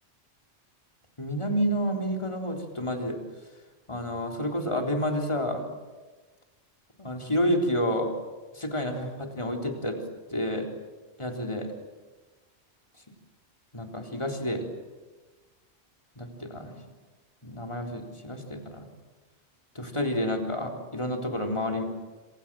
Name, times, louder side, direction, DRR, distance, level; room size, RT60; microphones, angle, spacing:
voice 1, 1.2-3.2 3.9-5.6 7.0-8.1 8.5-10.0 10.3-10.7 11.2-11.7 13.7-14.7 16.2-16.7 17.4-18.9 19.7-21.8, equal, 25° left, 3 dB, 4.0 m, -29 dB
27.5 x 27.0 x 7.7 m, 1.3 s
omnidirectional pair, 1.1 m